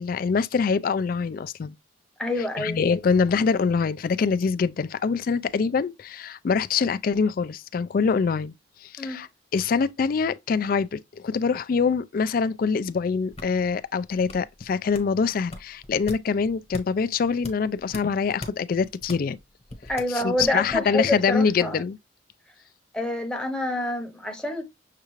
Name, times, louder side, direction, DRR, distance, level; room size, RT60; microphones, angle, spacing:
voice 1, 0.0-1.7 2.6-8.6 8.8-19.4 20.1-22.0, left 5 dB, 45° left, 0.3 m, -24 dB
voice 2, 2.2-2.8 9.0-9.2 19.9-21.8 22.9-24.6, left 1 dB, 5° left, 0.8 m, -27 dB
sound 1, 13.0-20.9, left 2 dB, 30° left, 1.1 m, -41 dB
6.6 x 2.4 x 3.0 m
head